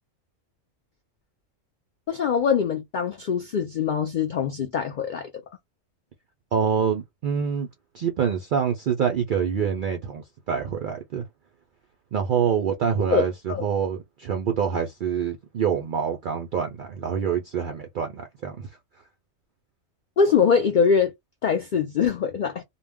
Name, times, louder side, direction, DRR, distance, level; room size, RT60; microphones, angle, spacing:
voice 1, 2.1-5.3 13.1-13.6 20.2-21.1 21.4-22.6, left 6 dB, 75° left, 0.4 m, -23 dB
voice 2, 6.5-7.7 7.9-11.3 12.1-18.7, right 7 dB, 70° right, 0.4 m, -26 dB
2.2 x 2.1 x 3.4 m
omnidirectional pair, 1.4 m